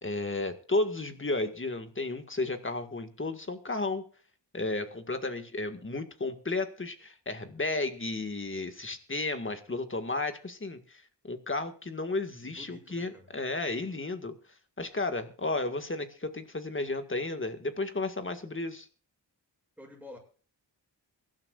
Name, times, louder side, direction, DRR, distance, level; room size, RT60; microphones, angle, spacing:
voice 1, 0.0-4.0 4.5-14.3 14.8-18.9, left 2 dB, 30° left, 7 dB, 1.8 m, -33 dB
voice 2, 12.4-13.3 19.8-20.2, left 1 dB, 5° right, -6 dB, 6.7 m, -49 dB
23.5 x 12.0 x 2.5 m, 0.41 s
wide cardioid pair, 115°, 43 cm